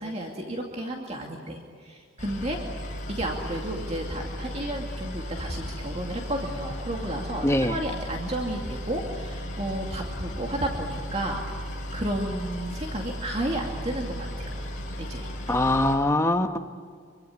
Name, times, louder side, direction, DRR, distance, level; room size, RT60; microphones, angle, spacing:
voice 1, 0.0-2.6 3.1-11.4 11.9-14.5 15.0-15.3, right 1 dB, 30° right, 0 dB, 2.4 m, -32 dB
Boat Water vehicle, 2.2-15.9, equal, 35° left, 6.3 m, -36 dB
voice 2, 7.4-7.7 15.5-16.6, left 1 dB, 15° left, 5 dB, 1.2 m, -22 dB
25.5 x 24.0 x 9.5 m, 2.1 s
head